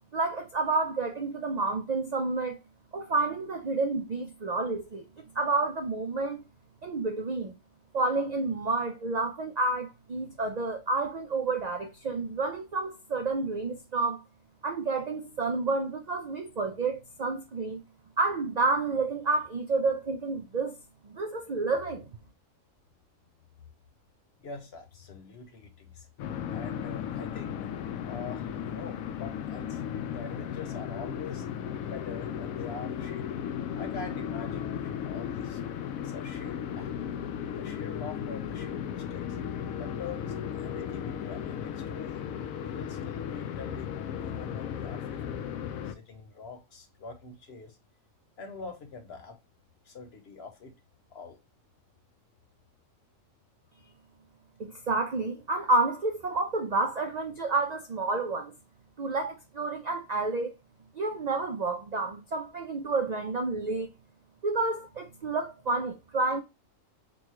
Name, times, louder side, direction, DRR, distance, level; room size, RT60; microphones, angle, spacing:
voice 1, 0.1-2.6 2.9-5.0 5.3-6.4 6.8-7.5 7.9-14.2 14.6-17.8 18.2-20.8 21.0-22.1 54.6-58.5 59.0-60.6 61.0-63.9 64.4-66.4, right 3 dB, 85° right, 0.3 m, -29 dB
voice 2, 24.4-26.1 26.5-27.7 28.0-29.8 30.1-31.5 31.8-33.4 33.8-36.9 37.6-39.4 39.8-42.3 42.6-45.2 45.8-47.8 48.4-49.4 49.8-50.7 51.1-51.4, left 4 dB, 55° left, 1.0 m, -44 dB
sound 1, 26.2-45.9, left 8 dB, 85° left, 1.0 m, -35 dB
4.0 x 2.3 x 2.9 m
omnidirectional pair, 1.4 m